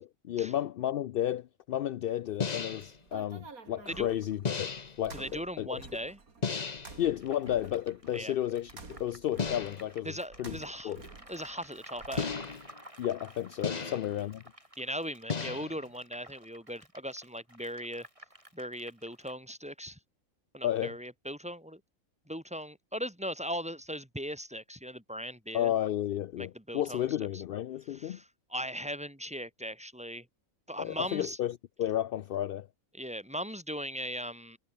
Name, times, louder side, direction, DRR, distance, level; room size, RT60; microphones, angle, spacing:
voice 1, 0.0-5.8 7.0-10.1 10.4-10.6 10.8-11.0 13.0-14.4 20.6-21.0 25.5-28.2 30.8-32.7, left 11 dB, 70° left, 0.5 m, -32 dB
sound 1, 2.4-3.0 4.4-5.0 6.4-7.0 9.4-9.9 12.2-12.8 13.6-14.2 15.3-15.9, left 5 dB, 35° left, 1.0 m, -34 dB
sound 2, 2.5-12.7, right 4 dB, 85° right, 3.3 m, -51 dB
voice 2, 5.1-6.2 8.1-8.3 10.0-11.0 11.3-12.4 13.7-14.0 14.8-18.1 18.5-20.0 20.5-21.8 22.3-25.7 26.4-27.0 27.3-27.4 27.9-30.3 30.7-31.4 32.9-34.6, equal, 5° right, 2.4 m, -39 dB
sound 3, 7.0-19.3, right 1 dB, 20° right, 7.1 m, -53 dB
omnidirectional pair, 1.5 m